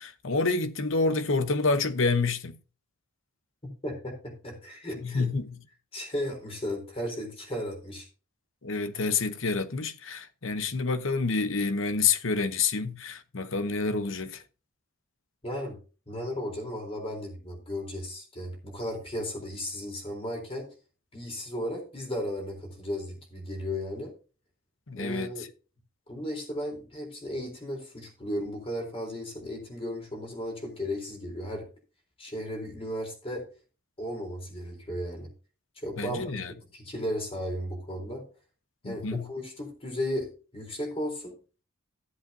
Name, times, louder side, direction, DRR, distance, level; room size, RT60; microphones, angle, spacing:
voice 1, 0.0-2.6 5.0-5.6 8.6-14.4 24.9-25.5 36.0-36.5 38.8-39.3, left 4 dB, 65° left, 0.9 m, -28 dB
voice 2, 3.8-5.3 5.9-8.1 15.4-15.8 16.1-20.7 21.1-24.1 25.0-25.4 26.1-31.7 32.2-33.4 34.0-35.3 35.8-36.4 36.7-38.2 38.8-41.4, equal, 25° left, 3.8 m, -35 dB
15.0 x 8.0 x 2.8 m
head